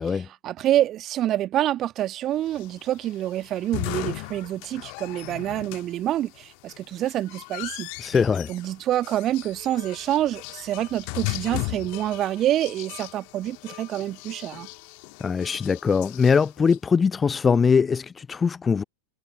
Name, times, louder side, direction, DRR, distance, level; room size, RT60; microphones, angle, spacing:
voice 1, 0.4-7.9 8.5-14.7, right 13 dB, 30° right, 1.7 m, -27 dB
sound 1, 2.5-16.8, left 40 dB or more, 45° left, 1.7 m, -37 dB
voice 2, 8.0-8.5 15.2-18.8, left 5 dB, 15° left, 0.6 m, -22 dB
figure-of-eight pair, 90°, 0 cm